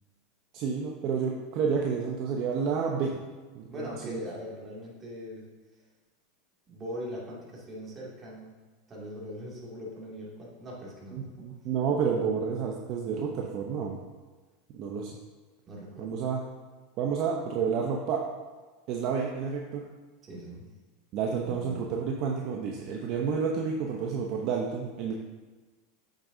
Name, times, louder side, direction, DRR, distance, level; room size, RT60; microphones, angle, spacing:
voice 1, 0.5-3.2 3.5-4.2 11.1-14.0 14.7-15.1 16.0-16.4 17.0-18.2 18.9-19.9 21.1-25.1, right 6 dB, 55° right, 0 dB, 0.8 m, -30 dB
voice 2, 3.7-5.5 6.7-8.5 8.9-11.5 15.7-16.1 20.2-20.7 21.4-21.9, equal, 30° right, -4 dB, 2.4 m, -41 dB
8.3 x 6.4 x 2.7 m, 1.3 s
hypercardioid pair, 110°, 0 cm